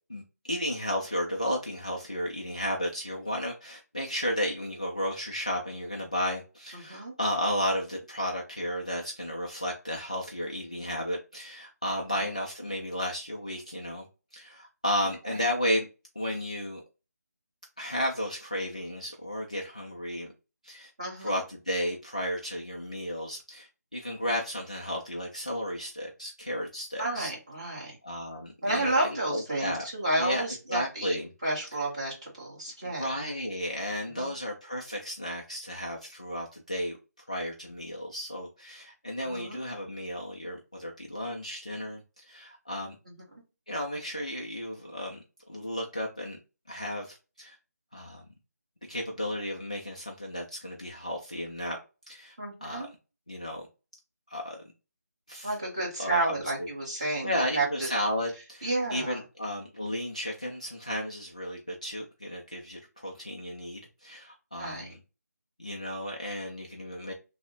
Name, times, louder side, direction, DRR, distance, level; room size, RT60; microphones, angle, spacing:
voice 1, 0.1-14.1 14.3-15.9 16.2-16.8 17.8-20.3 20.6-20.9 21.2-27.3 28.0-28.9 29.3-29.8 30.2-30.4 30.7-31.3 33.0-37.0 37.3-43.0 43.7-45.2 45.5-46.4 46.7-47.6 47.9-48.2 48.9-51.8 52.1-52.4 52.6-52.9 53.3-53.6 54.3-54.6 55.3-55.5 56.0-56.4 57.2-65.0 65.6-67.1, equal, 25° left, 0.3 m, -33 dB
voice 2, 6.7-7.1 12.1-12.3 15.3-15.5 21.0-21.4 27.0-28.0 28.6-31.2 31.4-33.1 34.1-34.3 39.2-39.6 43.1-43.4 52.4-52.9 55.4-57.9 58.6-59.2 64.6-64.9, right 2 dB, 20° right, 1.1 m, -31 dB
3.3 x 2.0 x 3.7 m
figure-of-eight pair, 180°, 9 cm